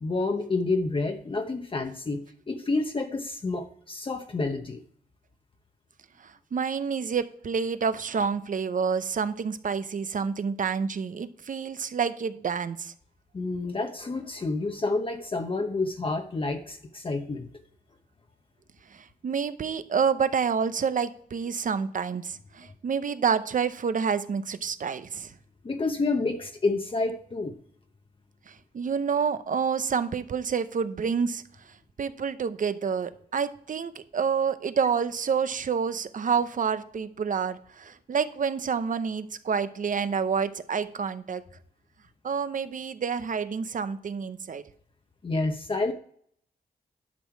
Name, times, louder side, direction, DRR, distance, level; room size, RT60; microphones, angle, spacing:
voice 1, 0.0-4.8 13.3-17.5 25.6-27.6 45.2-45.9, left 3 dB, 35° left, 5 dB, 0.8 m, -29 dB
voice 2, 6.2-12.9 18.9-25.3 28.5-41.4 42.2-44.6, right 6 dB, 55° right, 13 dB, 0.7 m, -28 dB
11.5 x 6.4 x 4.7 m, 0.63 s
wide cardioid pair, 95°, 16 cm